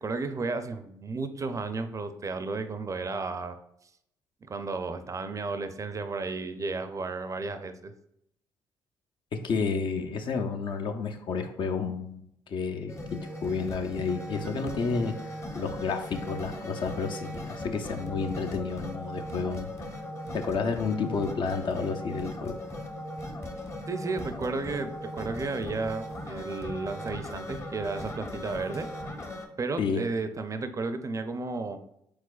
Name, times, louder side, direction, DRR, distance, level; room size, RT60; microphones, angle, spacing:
voice 1, 0.0-3.6 4.5-7.9 23.9-28.9 29.6-31.8, right 3 dB, 35° right, 9 dB, 0.4 m, -33 dB
voice 2, 9.4-12.2 12.5-19.7 20.3-22.5 29.8-30.0, left 5 dB, 55° left, 5 dB, 0.5 m, -31 dB
sound 1, 12.9-29.5, left 1 dB, 30° left, 0.8 m, -38 dB
4.8 x 3.7 x 2.4 m, 0.75 s
hypercardioid pair, 55°, 10 cm